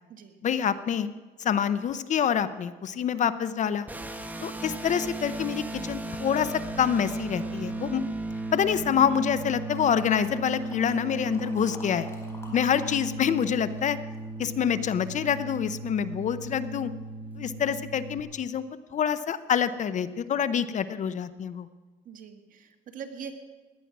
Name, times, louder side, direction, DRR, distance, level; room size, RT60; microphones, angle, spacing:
voice 1, 0.4-1.1 1.4-3.9 4.4-8.0 8.5-12.1 12.5-14.0 14.4-16.9 17.4-18.6 18.9-21.7, left 8 dB, 45° left, 13 dB, 0.8 m, -26 dB
sound 1, 3.9-18.2, right 2 dB, 10° right, 1.5 m, -36 dB
sound 2, 9.7-13.0 13.2-14.7 15.2-15.3, left 2 dB, 15° left, 4.2 m, -48 dB
voice 2, 22.1-23.3, right 7 dB, 55° right, 5 dB, 1.7 m, -42 dB
17.5 x 11.0 x 6.0 m, 1.3 s
cardioid pair, 110°, 17 cm